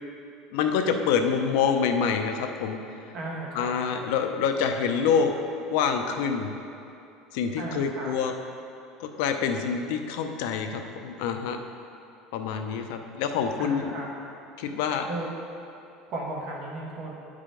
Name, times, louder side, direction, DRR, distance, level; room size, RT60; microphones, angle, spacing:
voice 1, 0.5-2.8 3.6-5.3 5.7-6.5 7.3-8.3 9.0-11.6 12.3-13.9 14.6-15.1, left 6 dB, 75° left, 5 dB, 0.6 m, -26 dB
voice 2, 3.1-3.7 7.6-8.1 13.6-14.1 15.1-15.3 16.1-17.1, right 2 dB, 45° right, -3 dB, 1.4 m, -35 dB
9.7 x 4.9 x 3.8 m, 2.8 s
cardioid pair, 160°, 0 cm